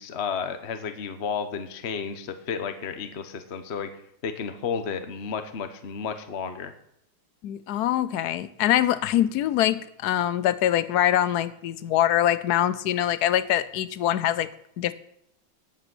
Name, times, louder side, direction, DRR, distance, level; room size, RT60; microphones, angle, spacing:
voice 1, 0.0-3.9 4.2-6.7, left 6 dB, 40° left, 8 dB, 1.0 m, -32 dB
voice 2, 7.4-14.5 14.8-14.9, left 12 dB, 75° left, 15 dB, 0.9 m, -24 dB
18.5 x 7.9 x 6.1 m, 0.74 s
omnidirectional pair, 2.4 m